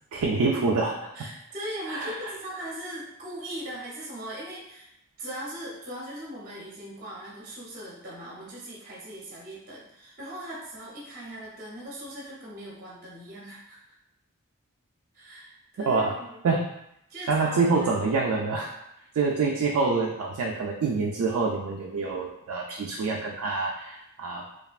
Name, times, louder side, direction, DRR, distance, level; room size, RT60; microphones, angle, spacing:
voice 1, 0.1-1.1 1.9-2.2 15.9-16.1 16.4-16.7 17.3-18.8 19.2-24.4, right 4 dB, 75° right, -1 dB, 0.3 m, -26 dB
voice 2, 1.1-4.9 5.2-13.8 15.1-16.4 17.1-18.2, right 1 dB, 40° right, -5 dB, 0.6 m, -39 dB
3.2 x 2.3 x 2.4 m, 0.80 s
head